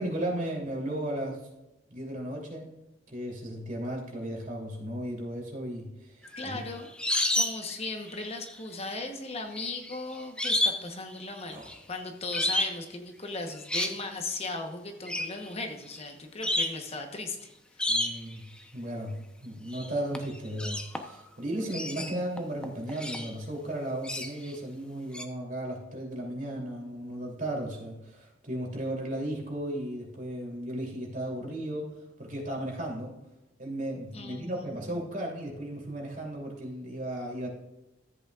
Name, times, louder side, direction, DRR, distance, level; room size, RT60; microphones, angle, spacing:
voice 1, 0.0-1.5 1.9-2.7 3.1-6.6 11.5-11.8 17.9-18.4 18.7-19.1 19.4-33.1 33.6-37.5, right 1 dB, 45° right, -1 dB, 3.1 m, -35 dB
sound 1, 6.2-7.7 8.0-8.6 9.5-10.9 11.2-11.8 12.3-12.8 13.4-14.0 15.1-15.3 15.9-16.0 16.4-16.8 17.8-18.4 19.7-19.9 20.1-21.3 21.7-23.3 24.0-24.5 25.1-25.3, left 1 dB, 5° left, 0.8 m, -30 dB
voice 2, 6.4-6.9 7.4-11.6 11.9-17.5 34.1-34.8, left 3 dB, 35° left, 4 dB, 1.1 m, -37 dB
14.0 x 8.1 x 2.4 m, 0.96 s
head